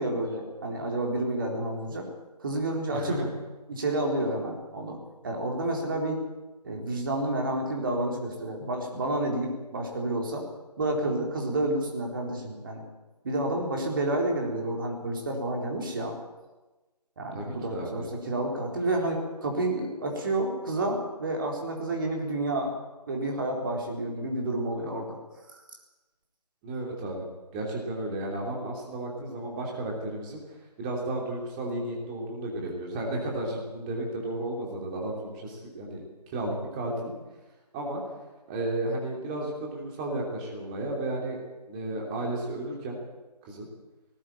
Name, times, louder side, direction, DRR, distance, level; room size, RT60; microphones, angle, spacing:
voice 1, 0.0-2.1 2.4-3.1 3.7-5.0 5.2-6.2 6.6-10.4 10.8-12.8 13.2-16.1 17.2-22.7 23.1-25.2, right 1 dB, 30° right, 1 dB, 4.1 m, -30 dB
voice 2, 2.9-3.3 17.3-18.1 26.6-27.2 27.5-36.0 36.3-37.1 37.7-38.0 38.5-41.4 41.7-43.0 43.4-43.7, right 1 dB, 10° right, -1 dB, 3.0 m, -33 dB
18.5 x 16.5 x 8.8 m, 1.2 s
figure-of-eight pair, 155°, 21 cm